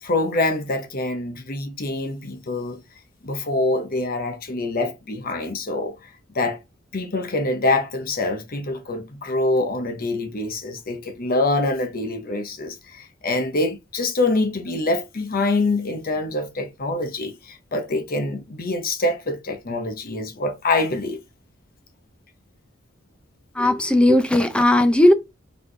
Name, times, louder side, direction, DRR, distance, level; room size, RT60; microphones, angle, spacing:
voice 1, 0.0-2.8 3.2-6.1 6.3-6.6 6.9-21.2, left 2 dB, 45° left, 0.9 m, -25 dB
voice 2, 23.6-25.1, left 1 dB, 5° left, 0.5 m, -16 dB
4.1 x 3.5 x 3.3 m
head